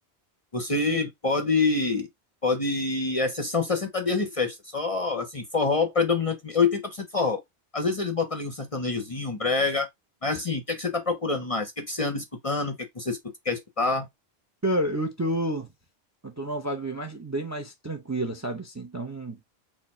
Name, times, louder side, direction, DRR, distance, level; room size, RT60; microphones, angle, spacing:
voice 1, 0.5-2.1 2.4-7.4 7.7-9.9 10.2-13.2 13.4-14.1, left 4 dB, 40° left, 0.6 m, -26 dB
voice 2, 14.6-15.7 16.2-19.4, right 1 dB, 20° right, 0.5 m, -30 dB
4.4 x 2.4 x 4.2 m
omnidirectional pair, 1.1 m